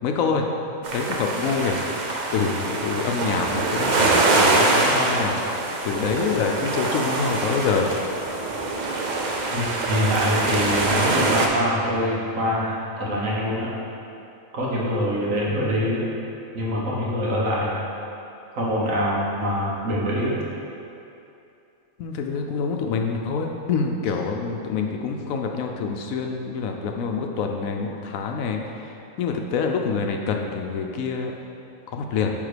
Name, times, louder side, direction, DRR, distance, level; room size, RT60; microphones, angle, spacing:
voice 1, 0.0-0.4 0.9-2.0 2.3-5.4 5.8-7.9 22.0-28.9 29.2-31.3 31.9-32.3, left 5 dB, 80° left, 3 dB, 1.0 m, -26 dB
sound 1, 0.8-11.5, right 2 dB, 50° right, 0.6 m, -24 dB
voice 2, 9.5-13.7 14.5-16.0 16.5-17.8 18.5-20.4, equal, 70° right, -5 dB, 1.6 m, -24 dB
8.6 x 3.6 x 5.0 m, 2.7 s
omnidirectional pair, 1.4 m